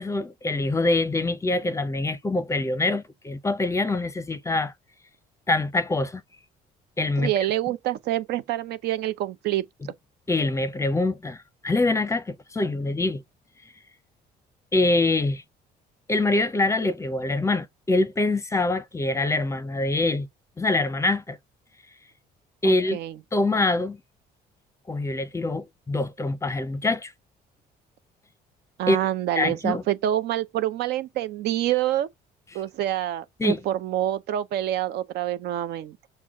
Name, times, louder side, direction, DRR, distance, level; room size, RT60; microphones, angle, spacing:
voice 1, 0.0-4.7 5.5-6.2 7.0-7.3 10.3-13.2 14.7-15.4 16.1-20.3 20.6-21.4 22.6-23.0 23.3-24.0 24.9-27.1 28.9-29.0 29.4-29.8 33.4-33.6, left 2 dB, 15° left, 0.5 m, -24 dB
voice 2, 7.2-9.9 22.6-23.2 28.8-32.1 32.5-36.0, right 12 dB, 75° right, 0.6 m, -27 dB
6.1 x 2.2 x 3.5 m
cardioid pair, 110°, 17 cm